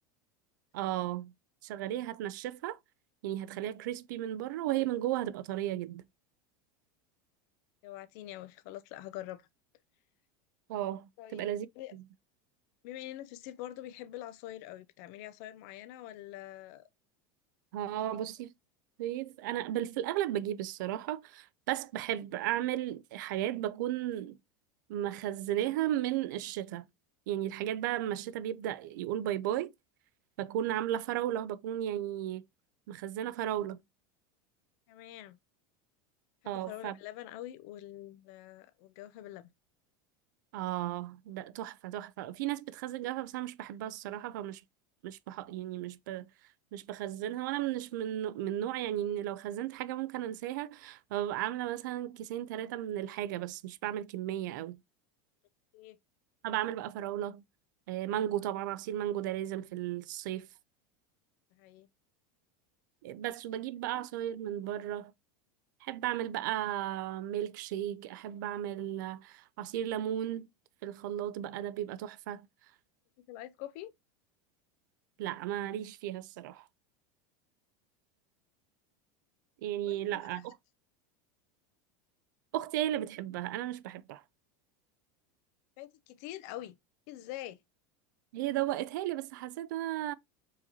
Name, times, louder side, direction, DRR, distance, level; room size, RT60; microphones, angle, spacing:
voice 1, 0.7-1.3 1.6-2.8 3.2-6.0 10.7-11.7 17.7-18.5 19.0-24.4 24.9-26.9 27.3-29.7 30.4-32.4 32.9-33.8 36.5-36.9 40.5-44.6 45.0-46.2 46.7-54.8 56.4-57.4 57.9-60.5 63.0-65.1 65.8-70.5 70.8-72.5 75.2-76.6 79.6-80.6 82.5-84.2 88.3-90.1, right 12 dB, 80° right, 0.4 m, -35 dB
voice 2, 7.8-9.5 11.2-11.5 11.8-11.9 12.8-16.9 18.0-18.2 34.9-35.4 36.4-39.5 55.7-56.0 61.5-61.9 73.3-73.9 79.9-80.4 85.8-86.8 87.1-87.6, left 14 dB, 55° left, 0.5 m, -45 dB
4.7 x 2.9 x 2.7 m
supercardioid pair, 155°, 10 cm